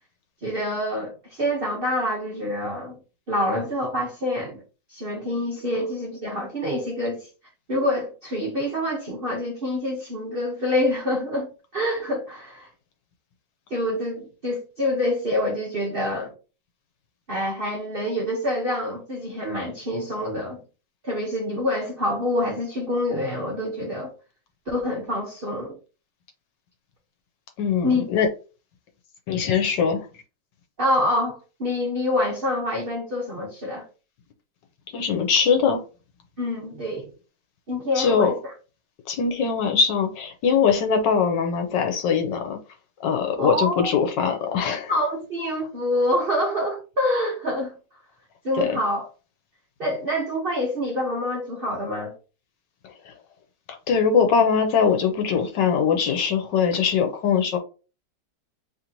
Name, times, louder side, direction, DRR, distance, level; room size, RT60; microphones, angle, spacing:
voice 1, 0.4-3.0 3.3-4.6 4.9-7.3 7.7-12.7 13.7-16.3 17.3-20.6 21.0-24.1 24.7-25.8 27.8-28.0 30.8-33.8 36.4-37.1 37.7-38.4 43.4-43.9 44.9-47.7 48.4-49.1 49.8-52.1, left 1 dB, 40° right, 0.9 m, -26 dB
voice 2, 27.6-28.3 29.3-30.1 34.9-35.8 38.0-38.3 39.1-42.6 43.0-44.9 48.6-48.8 52.8-53.1 53.7-57.6, left 6 dB, 80° left, 1.4 m, -22 dB
3.3 x 2.9 x 3.8 m
omnidirectional pair, 2.0 m